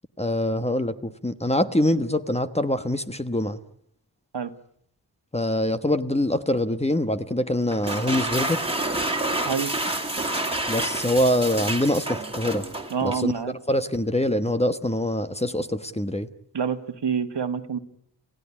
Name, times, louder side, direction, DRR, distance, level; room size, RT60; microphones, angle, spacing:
voice 1, 0.2-3.6 5.3-8.6 10.7-12.7 13.0-13.3 13.7-16.3, left 1 dB, 15° left, 10 dB, 1.2 m, -24 dB
sound 1, 7.7-13.3, right 2 dB, 15° right, 2.6 m, -28 dB
voice 2, 12.9-13.5 16.5-17.8, right 6 dB, 70° right, 9 dB, 1.6 m, -27 dB
28.5 x 16.5 x 9.8 m, 0.73 s
wide cardioid pair, 80°, 42 cm